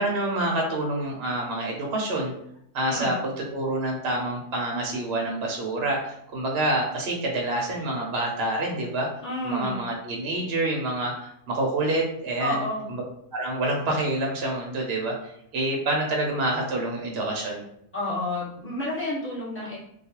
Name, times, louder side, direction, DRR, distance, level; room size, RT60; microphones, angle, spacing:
voice 1, 0.0-2.3 2.7-9.1 9.4-12.7 13.3-17.6, right 2 dB, 60° right, -1 dB, 0.7 m, -27 dB
voice 2, 2.8-3.1 9.2-9.8 12.4-12.9 17.9-19.8, left 1 dB, 10° left, -9 dB, 1.1 m, -30 dB
2.3 x 2.3 x 2.8 m, 0.73 s
omnidirectional pair, 1.4 m